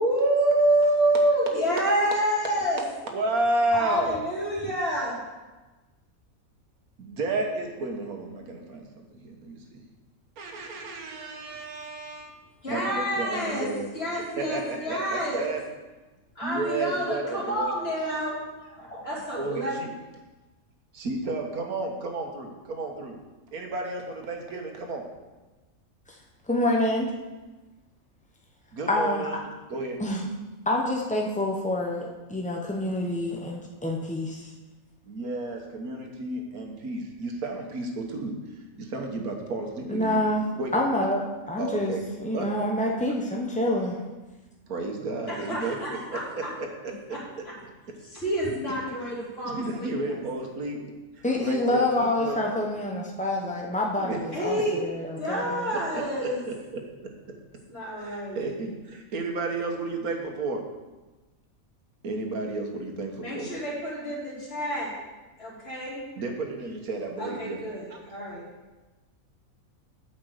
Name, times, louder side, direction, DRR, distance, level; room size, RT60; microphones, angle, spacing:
voice 1, 0.0-2.8 3.7-5.1 12.6-13.6 13.9-15.4 16.4-18.4 18.7-19.7 45.3-46.2 48.0-49.9 54.3-54.8 55.2-56.4 57.7-58.5 63.2-64.9 65.4-66.0 67.2-68.4, right 1 dB, 45° left, -6 dB, 3.0 m, -27 dB
voice 2, 3.0-4.2 7.0-9.8 10.4-12.3 12.7-13.9 14.4-15.6 16.4-17.7 19.4-19.9 20.9-23.2 23.5-25.0 28.7-30.0 35.0-38.3 38.8-40.2 40.6-40.9 41.6-42.0 42.3-42.5 44.7-46.7 49.4-50.8 51.2-52.6 54.0-54.2 55.9-57.1 58.0-60.6 62.0-63.5 66.2-67.6 67.9-68.0, right 2 dB, 80° right, 2 dB, 1.7 m, -32 dB
voice 3, 26.5-27.1 28.9-29.3 30.0-30.2 30.7-34.5 39.9-41.2 41.5-44.0 51.2-55.7, left 1 dB, 10° left, -1 dB, 0.3 m, -27 dB
8.6 x 5.1 x 6.5 m, 1.2 s
omnidirectional pair, 1.5 m